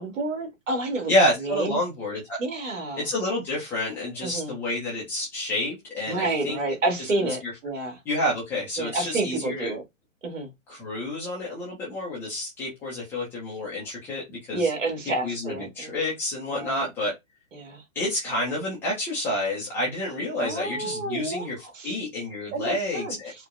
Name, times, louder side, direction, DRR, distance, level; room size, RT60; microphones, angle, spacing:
voice 1, 0.0-1.1 1.4-1.8 2.4-3.0 4.2-4.5 6.1-8.0 8.8-9.8 10.2-10.5 14.5-16.0 16.5-16.9 17.5-17.8 20.4-21.5 21.7-22.0 22.5-23.1, right 2 dB, 65° right, 2.0 m, -29 dB
voice 2, 1.1-2.4 3.0-6.6 7.4-7.5 8.1-9.7 10.7-14.7 15.2-17.1 18.0-21.6 21.8-23.3, left 1 dB, 5° left, 0.3 m, -29 dB
4.6 x 2.1 x 2.4 m
hypercardioid pair, 130°, 40 cm